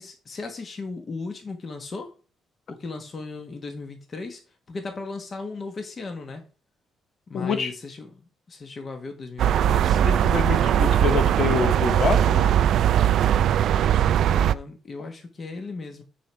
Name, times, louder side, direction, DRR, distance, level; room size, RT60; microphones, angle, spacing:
voice 1, 0.0-2.1 2.7-4.4 4.7-6.4 7.3-8.1 8.5-10.0 14.2-16.0, left 3 dB, 40° left, 1.3 m, -36 dB
voice 2, 7.3-7.7 10.0-12.5, left 6 dB, 60° left, 1.0 m, -26 dB
sound 1, 9.4-14.5, right 10 dB, 75° right, 0.3 m, -20 dB
9.1 x 4.4 x 3.4 m
cardioid pair, 90°, 0 cm